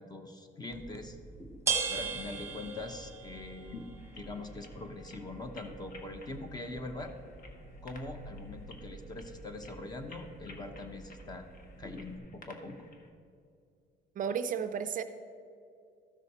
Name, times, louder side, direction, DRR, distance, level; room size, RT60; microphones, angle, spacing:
voice 1, 0.0-1.6 1.9-7.1 7.8-11.5 11.8-12.9, left 2 dB, 20° left, 6 dB, 0.9 m, -43 dB
sound 1, 0.7-12.2, right 5 dB, 15° right, 1.1 m, -41 dB
sound 2, 4.0-13.1, left 3 dB, 45° left, 1.4 m, -57 dB
sound 3, 7.3-9.9, right 1 dB, 80° left, 2.1 m, -52 dB
voice 2, 14.2-15.0, right 7 dB, 45° right, 10 dB, 0.5 m, -33 dB
13.5 x 6.3 x 4.2 m, 2.5 s
cardioid pair, 115°, 19 cm